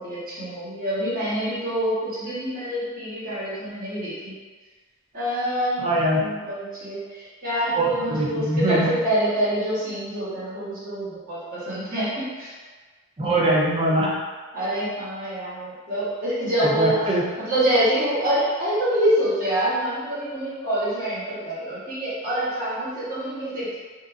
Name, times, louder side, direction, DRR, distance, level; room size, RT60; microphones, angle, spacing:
voice 1, 0.0-4.3 5.1-5.9 6.2-8.8 9.0-12.5 14.5-17.0 17.4-23.8, right 1 dB, 45° right, -10 dB, 1.3 m, -26 dB
voice 2, 5.8-6.2 7.7-8.9 13.2-14.1 16.6-17.2, right 1 dB, 30° right, -5 dB, 0.6 m, -22 dB
2.6 x 2.5 x 3.5 m, 1.4 s
head